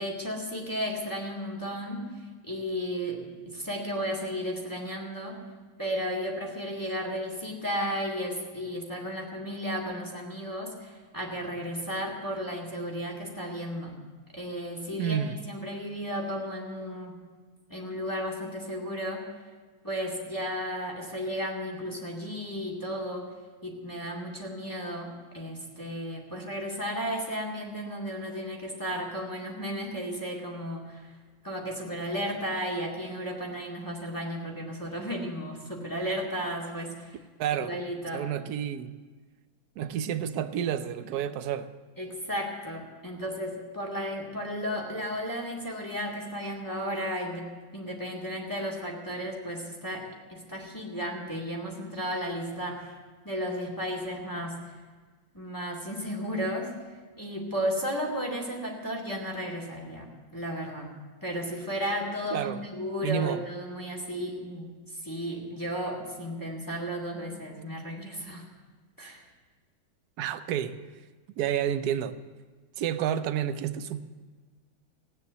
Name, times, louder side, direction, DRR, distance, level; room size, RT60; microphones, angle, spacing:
voice 1, 0.0-2.0 2.4-5.4 5.8-13.9 14.3-17.1 17.7-19.2 19.8-23.2 23.6-31.1 31.4-37.2 37.6-38.2 42.0-47.4 47.7-50.0 50.3-52.9 53.2-54.7 55.3-56.7 57.2-60.9 61.2-64.7 65.0-68.4 69.0-69.2, equal, 10° left, 2.2 m, -34 dB
voice 2, 15.0-15.4 37.4-37.8 38.1-39.0 39.8-41.7 62.3-62.6 63.0-63.4 70.2-70.8 71.4-72.2 72.8-74.0, right 9 dB, 65° right, 1.1 m, -30 dB
16.0 x 9.6 x 8.1 m
omnidirectional pair, 2.2 m